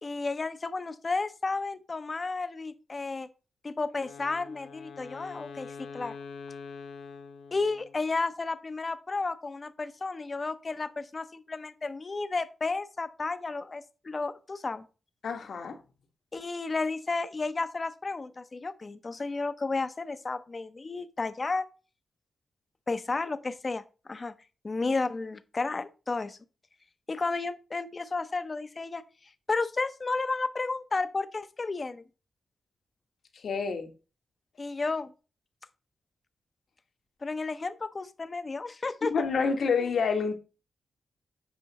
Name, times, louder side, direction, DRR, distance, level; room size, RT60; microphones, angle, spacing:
voice 1, 0.0-3.3 3.6-6.2 7.5-14.8 16.3-21.7 22.9-23.8 24.1-24.3 24.6-26.4 27.1-29.0 29.5-32.0 34.6-35.1 37.2-39.1, left 3 dB, 30° left, 0.6 m, -32 dB
Wind instrument woodwind instrument, 4.0-8.2, left 5 dB, 85° left, 0.7 m, -44 dB
voice 2, 15.2-15.8 33.4-33.9 39.1-40.4, left 5 dB, 65° left, 1.3 m, -28 dB
7.8 x 5.7 x 4.0 m
wide cardioid pair, 125°, 0 cm